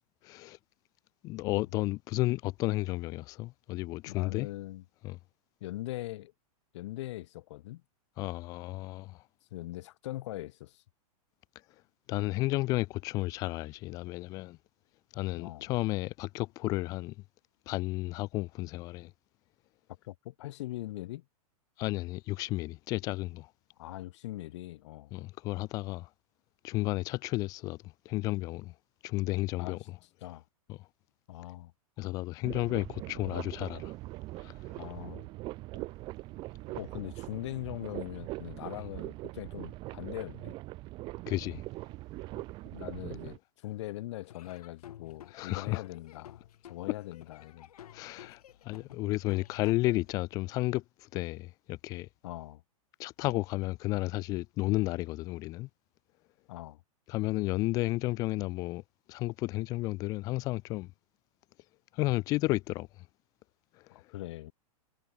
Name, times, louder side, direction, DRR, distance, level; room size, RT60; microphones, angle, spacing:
voice 1, 0.2-0.6 1.2-4.5 5.0-5.2 8.2-9.2 12.1-14.6 15.1-17.1 17.7-19.1 21.8-23.5 25.1-26.1 26.6-27.8 28.1-28.7 29.0-29.8 30.7-30.8 32.0-33.9 34.4-34.5 41.3-41.6 45.3-45.8 47.9-52.1 53.0-55.7 57.1-58.8 59.1-60.9 61.9-62.9, left 19 dB, 20° left, 0.4 m, -32 dB
voice 2, 4.1-4.8 5.6-6.3 6.7-7.8 9.5-10.8 15.3-15.7 20.0-21.2 23.8-25.2 29.6-29.8 30.2-30.4 31.3-31.7 32.0-32.1 34.7-35.3 36.7-40.6 42.6-47.7 52.2-52.6 56.5-56.8 63.9-64.5, left 16 dB, 50° left, 1.4 m, -41 dB
sound 1, 32.4-43.4, right 19 dB, 25° right, 1.2 m, -42 dB
Laughter / Drum, 44.2-50.2, left 11 dB, 75° left, 4.3 m, -53 dB
supercardioid pair, 165°, 19 cm